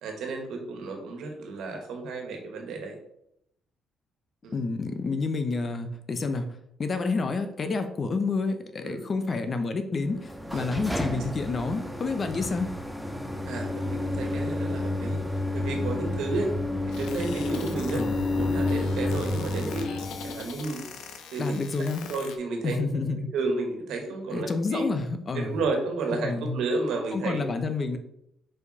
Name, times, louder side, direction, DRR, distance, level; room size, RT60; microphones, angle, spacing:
voice 1, 0.0-3.0 4.4-4.6 8.8-9.0 10.5-10.7 13.5-15.2 15.5-16.5 17.0-19.9 20.2-20.8 21.3-21.5 22.1-22.8 23.3-24.8 25.3-27.4, right 3 dB, 80° right, 3 dB, 1.5 m, -32 dB
voice 2, 4.5-12.7 17.9-18.3 21.4-22.1 22.6-23.3 24.3-25.6 26.2-26.6 27.1-28.0, left 3 dB, 40° left, 8 dB, 0.8 m, -29 dB
sound 1, 10.1-20.5, left 2 dB, ahead, 0.8 m, -30 dB
sound 2, 16.9-22.4, left 6 dB, 90° left, 0.8 m, -43 dB
5.1 x 4.8 x 4.1 m, 0.78 s
cardioid pair, 90°, 0 cm